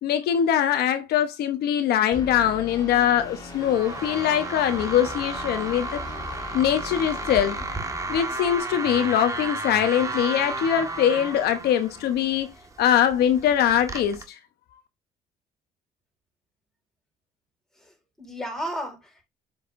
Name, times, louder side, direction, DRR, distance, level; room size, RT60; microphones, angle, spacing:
voice 1, 0.0-6.0 6.5-7.6 8.1-14.4, left 10 dB, 70° left, 1.0 m, -22 dB
sound 1, 2.1-8.6, left 3 dB, 25° left, 2.7 m, -40 dB
sound 2, 3.2-14.2, right 3 dB, 20° right, 1.6 m, -33 dB
voice 2, 17.8-19.2, equal, 5° left, 4.8 m, -34 dB
7.5 x 6.6 x 2.6 m
cardioid pair, 110°, 17 cm